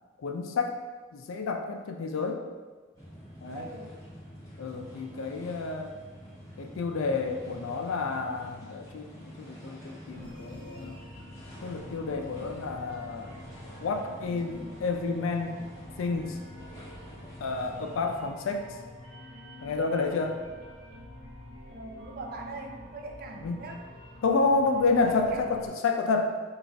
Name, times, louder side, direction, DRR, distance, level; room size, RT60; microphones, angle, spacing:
voice 1, 0.2-0.7 1.1-2.4 3.4-3.7 4.6-5.9 6.6-11.0 11.6-13.3 13.8-15.6 16.0-16.4 17.4-18.6 19.6-20.4 23.4-23.6 24.2-26.4, left 4 dB, 90° left, 4 dB, 0.4 m, -29 dB
sound 1, 2.9-18.3, equal, 15° left, 1.2 m, -47 dB
voice 2, 3.5-4.0 21.7-23.8 25.0-25.6, right 2 dB, 50° right, 2 dB, 0.4 m, -41 dB
sound 2, 10.1-25.7, left 1 dB, 70° right, 0.7 m, -47 dB
3.9 x 2.4 x 3.4 m, 1.4 s
head